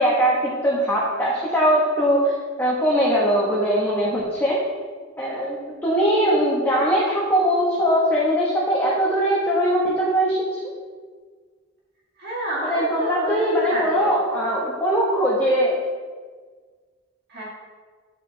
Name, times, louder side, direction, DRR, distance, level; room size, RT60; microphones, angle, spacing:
voice 1, 0.0-2.2 2.6-4.5 5.2-5.6 5.8-10.4 12.6-15.8, equal, 10° left, -6 dB, 1.1 m, -21 dB
voice 2, 12.2-14.2 17.3-17.4, right 1 dB, 55° right, -5 dB, 1.7 m, -29 dB
9.4 x 5.0 x 3.9 m, 1.5 s
head